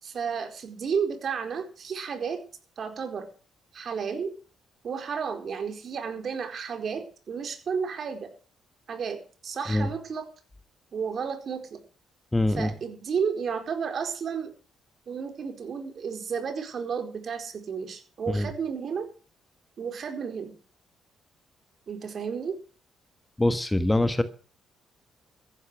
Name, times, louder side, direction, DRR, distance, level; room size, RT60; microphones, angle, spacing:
voice 1, 0.0-2.4 2.8-3.3 3.7-4.3 4.8-8.3 8.9-10.3 10.9-11.7 12.5-14.5 15.1-19.1 19.8-20.5 21.9-22.6, right 6 dB, 55° right, 6 dB, 4.4 m, -32 dB
voice 2, 12.3-12.7 18.3-18.5 23.4-24.2, left 1 dB, 10° left, 11 dB, 1.4 m, -24 dB
14.5 x 11.5 x 6.2 m, 0.40 s
cardioid pair, 90°, 0 cm